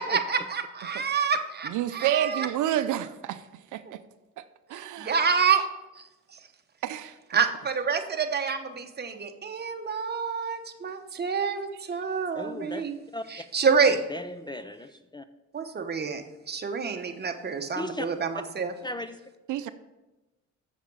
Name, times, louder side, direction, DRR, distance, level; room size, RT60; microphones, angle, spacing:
voice 1, 0.0-2.5 4.7-5.7 7.3-12.9 13.3-14.0 15.5-18.7, right 6 dB, 35° right, 6 dB, 1.0 m, -27 dB
voice 2, 1.6-3.4 3.7-4.0 4.7-5.1 6.8-7.1 19.5-19.7, right 11 dB, 75° right, 12 dB, 0.6 m, -29 dB
voice 3, 12.3-12.8 13.1-13.2 13.9-15.2 17.8-18.1 18.8-19.2, left 2 dB, 15° left, 11 dB, 0.4 m, -36 dB
7.3 x 7.3 x 5.4 m, 1.1 s
cardioid pair, 90°, 30 cm